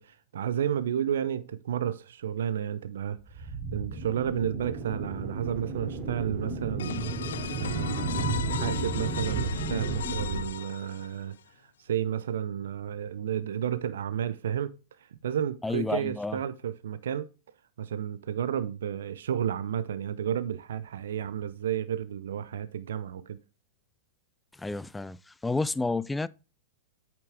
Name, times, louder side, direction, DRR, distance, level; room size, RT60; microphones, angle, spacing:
voice 1, 0.0-11.3 11.8-14.7 15.0-17.3 17.8-23.4, right 9 dB, 70° right, 0.6 m, -32 dB
sound 1, 3.2-10.5, right 3 dB, 30° right, 2.6 m, -33 dB
sound 2, 6.8-11.4, left 9 dB, 70° left, 0.4 m, -37 dB
voice 2, 15.6-16.4 24.6-25.2 25.4-26.3, left 3 dB, 10° left, 0.4 m, -30 dB
8.6 x 6.0 x 3.5 m
hypercardioid pair, 105°, 0 cm